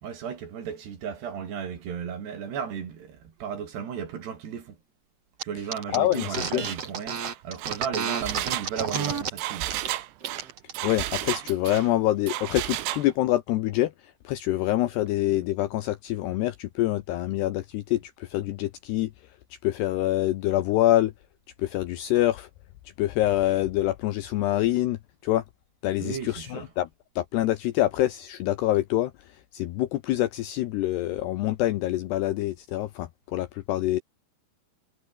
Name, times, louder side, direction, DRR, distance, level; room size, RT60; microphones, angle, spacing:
voice 1, 0.0-4.8 5.4-9.7 26.0-26.7, right 7 dB, 60° right, 5.1 m, -35 dB
sound 1, 5.4-5.5 5.7-9.3 9.7-9.9 10.2-10.7, right 6 dB, 40° right, 3.1 m, -30 dB
voice 2, 5.9-6.6 10.8-13.9 14.2-19.1 19.6-21.1 21.6-22.5 23.0-25.0 25.2-25.4 25.8-26.9 27.2-29.1 29.5-34.0, left 14 dB, 75° left, 2.6 m, -25 dB
Engine, 6.1-6.3 6.6-6.8 7.2-11.9 12.3-13.1, right 15 dB, 80° right, 3.7 m, -33 dB
omnidirectional pair, 5.7 m